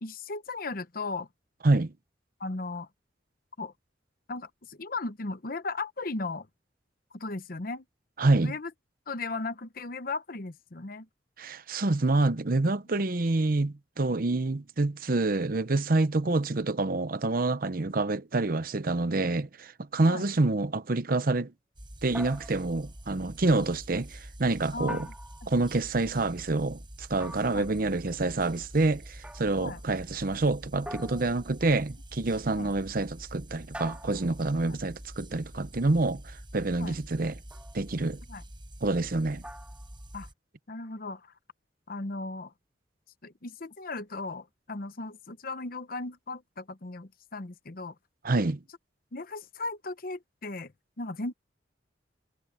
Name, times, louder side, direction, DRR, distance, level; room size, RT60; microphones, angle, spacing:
voice 1, 0.0-1.3 2.4-2.9 3.6-3.7 4.3-6.5 7.1-7.8 8.4-8.7 9.1-11.1 16.2-16.3 20.1-20.2 23.5-23.6 24.7-25.1 25.4-25.5 27.5-27.7 29.6-29.8 32.5-32.7 36.7-37.0 38.3-38.4 40.1-40.3 40.7-41.3 41.9-42.5 43.2-47.9 49.1-50.7 51.0-51.3, left 3 dB, 55° left, 0.9 m, -36 dB
voice 2, 8.2-8.5 11.4-21.5 22.0-25.1 25.5-37.4 37.7-38.2 38.8-39.4 48.2-48.6, right 2 dB, 50° right, 0.8 m, -27 dB
sound 1, 21.7-40.3, right 1 dB, 25° right, 5.7 m, -46 dB
sound 2, 22.1-22.9 24.9-25.7 27.2-27.8 29.2-29.6 30.9-31.8 33.7-34.5 37.5-37.9 39.4-39.9, right 1 dB, 5° right, 2.9 m, -44 dB
head